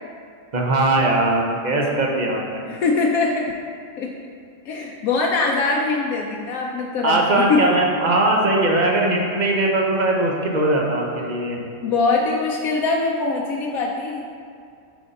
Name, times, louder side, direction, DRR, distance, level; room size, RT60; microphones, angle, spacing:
voice 1, 0.5-2.6 7.0-11.6, right 2 dB, 40° right, -1 dB, 0.7 m, -20 dB
voice 2, 2.7-3.6 4.0-4.1 4.6-7.7 11.8-14.2, left 3 dB, 85° left, 0 dB, 1.0 m, -22 dB
8.3 x 3.8 x 4.0 m, 2.4 s
omnidirectional pair, 1.5 m